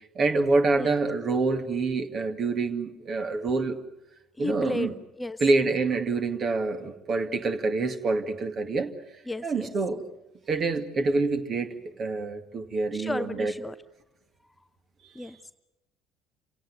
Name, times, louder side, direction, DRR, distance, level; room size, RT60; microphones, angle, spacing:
voice 1, 0.2-3.8 4.4-4.9 5.4-8.9 9.4-10.0 10.5-13.5 15.2-15.3, right 3 dB, 40° right, 8 dB, 2.3 m, -26 dB
voice 2, 4.4-5.4 9.3-9.7 12.9-13.7 15.1-15.4, left 2 dB, 10° left, 12 dB, 0.8 m, -33 dB
28.5 x 17.0 x 9.6 m, 0.95 s
figure-of-eight pair, 55°, 0 cm